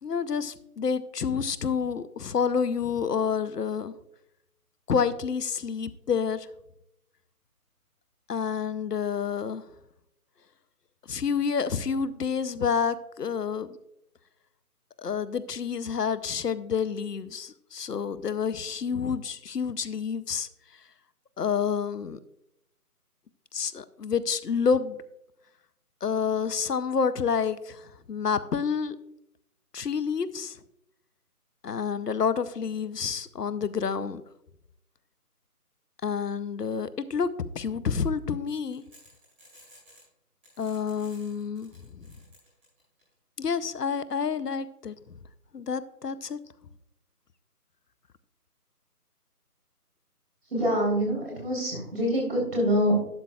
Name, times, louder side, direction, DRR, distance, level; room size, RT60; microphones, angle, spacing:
voice 1, 0.0-3.9 4.9-6.5 8.3-9.6 11.1-13.8 15.0-20.5 21.4-22.2 23.5-25.0 26.0-29.0 29.7-30.6 31.6-34.2 36.0-38.8 40.6-42.1 43.4-44.9 45.5-46.4, left 6 dB, 80° left, 15 dB, 0.7 m, -29 dB
sound 1, 38.7-40.1 40.4-43.0 43.5-43.6, equal, 10° right, 2.6 m, -55 dB
voice 2, 50.5-53.0, equal, 40° right, -2 dB, 3.5 m, -25 dB
12.0 x 8.4 x 2.3 m, 0.80 s
figure-of-eight pair, 170°, 47 cm